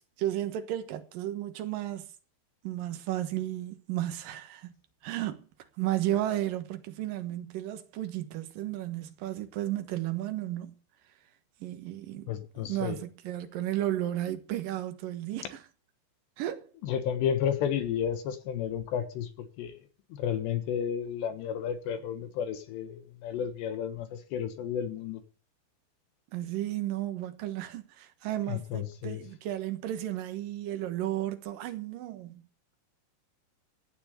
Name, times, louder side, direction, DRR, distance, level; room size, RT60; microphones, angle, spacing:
voice 1, 0.0-2.1 2.6-4.7 5.0-5.5 5.8-10.8 11.6-12.3 12.6-15.6 16.4-16.7 26.3-32.4, right 13 dB, 65° right, 2.4 m, -33 dB
voice 2, 12.3-13.0 16.8-19.8 20.1-25.2 28.5-29.2, left 8 dB, 75° left, 3.4 m, -32 dB
16.5 x 7.0 x 8.2 m
omnidirectional pair, 5.3 m